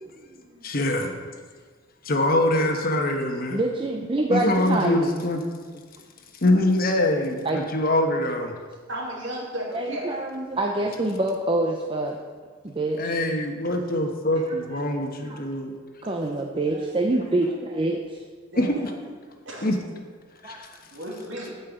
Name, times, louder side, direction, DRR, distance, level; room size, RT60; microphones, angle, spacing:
voice 1, 0.0-0.6 3.5-5.2 7.4-7.6 9.7-12.2 12.6-13.1 14.5-14.6 15.2-15.4 16.1-18.2 20.4-20.6, right 2 dB, 25° right, 1 dB, 0.6 m, -26 dB
voice 2, 0.6-1.1 2.0-3.6 4.3-5.4 5.7-5.8 6.4-8.5 13.0-15.7 18.6-18.9 19.6-19.8 20.4-20.7, left 1 dB, 45° left, 4 dB, 1.1 m, -24 dB
voice 3, 8.9-10.2 18.5-18.8 19.5-19.7 20.9-21.5, equal, 65° right, -3 dB, 2.7 m, -34 dB
8.7 x 5.6 x 8.1 m, 1.5 s
head